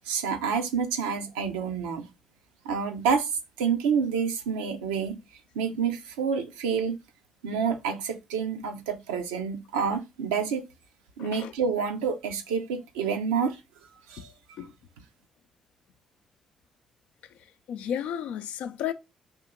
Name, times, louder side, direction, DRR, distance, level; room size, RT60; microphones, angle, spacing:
voice 1, 0.1-2.1 2.6-3.3 3.6-5.2 5.5-7.0 7.4-10.6 11.2-13.6 14.1-14.3, right 6 dB, 85° right, 0.6 m, -28 dB
voice 2, 11.2-11.5 14.6-14.7 17.7-18.9, left 9 dB, 70° left, 0.4 m, -32 dB
4.4 x 2.9 x 3.6 m
hypercardioid pair, 45°, 2 cm